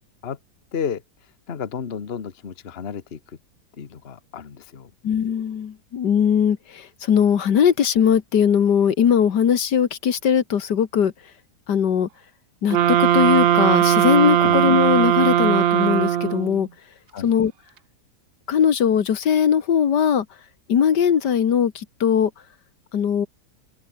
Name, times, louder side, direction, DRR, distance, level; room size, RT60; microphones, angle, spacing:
voice 1, 0.7-3.4 3.7-4.9 14.4-14.6 17.1-17.4, left 7 dB, 40° left, 1.4 m, -32 dB
voice 2, 5.0-11.1 11.7-12.1 12.6-16.7 17.2-17.5 18.5-20.3 20.7-22.3 22.9-23.3, left 8 dB, 75° left, 2.0 m, -20 dB
sound 1, 12.7-16.6, right 10 dB, 90° right, 0.5 m, -18 dB
omnidirectional pair, 1.9 m